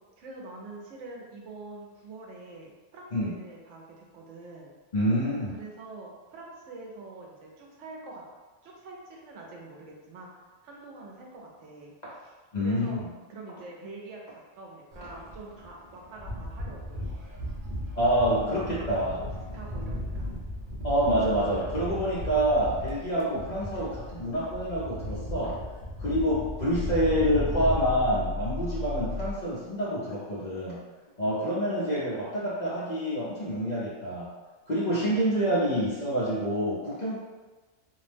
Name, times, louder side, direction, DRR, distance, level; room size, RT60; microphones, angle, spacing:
voice 1, 0.2-4.8 5.5-8.2 8.6-10.3 10.6-13.0 13.3-17.1 18.2-19.3 19.5-20.3 35.2-35.4, right 3 dB, 80° right, -1 dB, 0.9 m, -45 dB
voice 2, 4.9-5.5 12.5-13.1 17.9-19.2 20.8-25.6 26.0-30.8 31.2-34.3 34.7-37.2, equal, 45° left, -8 dB, 0.6 m, -27 dB
sound 1, 14.9-28.0, left 1 dB, 50° right, 0.7 m, -36 dB
sound 2, 26.7-29.5, left 3 dB, 90° left, 1.0 m, -33 dB
2.6 x 2.0 x 3.2 m, 1.3 s
omnidirectional pair, 1.3 m